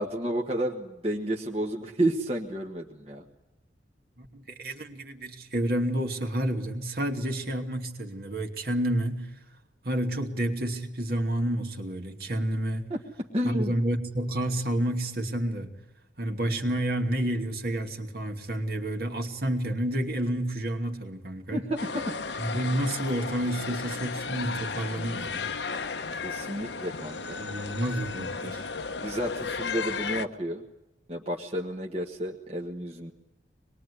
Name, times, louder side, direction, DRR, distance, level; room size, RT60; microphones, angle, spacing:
voice 1, 0.0-3.2 12.9-13.0 13.3-13.8 21.5-22.1 26.2-27.4 29.0-30.6 31.1-33.1, right 1 dB, 35° right, 1.6 m, -31 dB
voice 2, 4.2-9.3 9.8-12.9 13.4-15.7 16.2-21.7 22.4-25.6 27.4-28.7, right 1 dB, 55° right, 2.6 m, -30 dB
sound 1, 21.8-30.3, left 4 dB, 75° left, 1.2 m, -34 dB
25.5 x 21.5 x 10.0 m
head